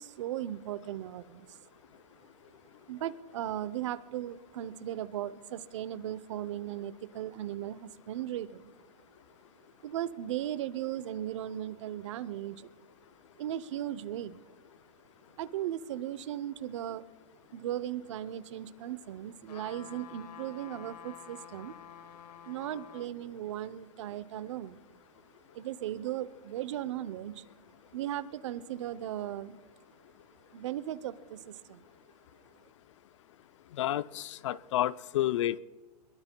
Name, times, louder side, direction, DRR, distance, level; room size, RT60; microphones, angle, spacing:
voice 1, 0.0-1.6 2.9-8.7 9.8-12.7 13.4-14.4 15.4-17.1 17.5-21.7 22.5-24.8 25.5-27.4 27.9-29.6 30.5-31.8, right 12 dB, 50° right, 16 dB, 0.7 m, -37 dB
sound 1, 19.5-23.1 23.6-23.7, left 9 dB, 85° left, 1.4 m, -49 dB
voice 2, 33.8-35.6, left 13 dB, 50° left, 17 dB, 0.4 m, -30 dB
23.0 x 22.0 x 2.2 m, 1.4 s
hypercardioid pair, 160°, 20 cm